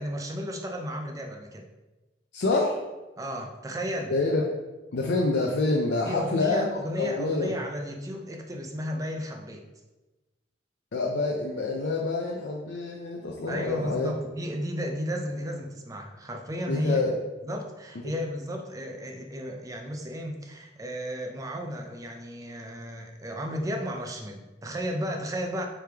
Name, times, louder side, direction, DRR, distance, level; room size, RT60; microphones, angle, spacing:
voice 1, 0.0-1.6 3.2-4.1 6.1-9.7 13.5-17.0 17.4-25.7, equal, 20° right, 3 dB, 0.4 m, -33 dB
voice 2, 2.3-2.8 4.1-4.5 4.9-7.6 10.9-14.1 16.7-17.2, left 3 dB, 65° left, -1 dB, 0.5 m, -27 dB
4.9 x 3.2 x 3.4 m, 1.1 s
head